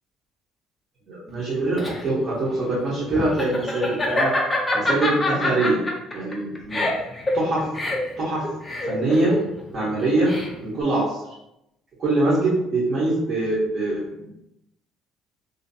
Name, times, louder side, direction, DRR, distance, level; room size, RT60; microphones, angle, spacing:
voice 1, 1.1-4.3 4.7-5.8 6.1-6.8 7.3-7.6 8.2-8.4 8.8-9.3 9.7-10.3 10.6-11.2 12.0-14.3, right 2 dB, 35° right, -9 dB, 0.8 m, -23 dB
Laughter, 1.4-10.8, left 2 dB, 10° left, 0.4 m, -26 dB
2.5 x 2.5 x 2.6 m, 0.86 s
cardioid pair, 175°, 0 cm